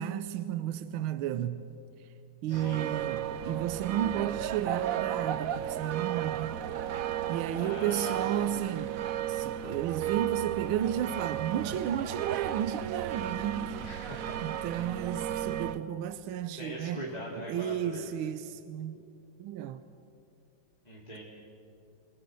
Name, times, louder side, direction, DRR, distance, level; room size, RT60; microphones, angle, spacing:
voice 1, 0.0-1.6 2.4-6.6 6.9-7.0 7.3-13.9 14.4-17.0 17.5-19.0 19.4-19.8, right 10 dB, 85° right, 1.6 m, -33 dB
voice 2, 2.5-2.9 7.6-8.5 13.8-14.4 16.6-18.1 20.8-21.2, equal, 20° left, 2.9 m, -41 dB
sound 1, 2.5-15.8, right 11 dB, 65° right, 0.8 m, -34 dB
26.5 x 18.5 x 7.8 m
omnidirectional pair, 2.3 m